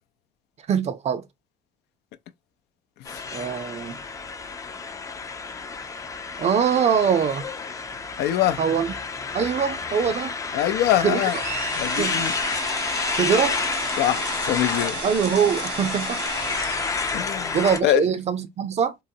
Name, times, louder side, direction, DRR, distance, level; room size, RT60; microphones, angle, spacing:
voice 1, 0.7-1.2 3.3-4.0 6.4-7.4 8.6-8.9 9.3-10.4 11.0-11.2 12.0-12.2 13.1-13.6 15.0-16.2 17.1-17.2 17.5-19.0, right 7 dB, 40° right, 0.5 m, -23 dB
sound 1, 3.0-17.8, left 4 dB, 20° left, 0.4 m, -30 dB
voice 2, 8.2-8.6 10.5-11.4 11.7-12.3 14.0-15.0 17.1-17.6 17.8-18.0, left 12 dB, 80° left, 0.5 m, -23 dB
sound 2, 11.1-17.6, right 5 dB, 80° right, 1.4 m, -35 dB
3.9 x 2.0 x 2.6 m
cardioid pair, 110°, 17 cm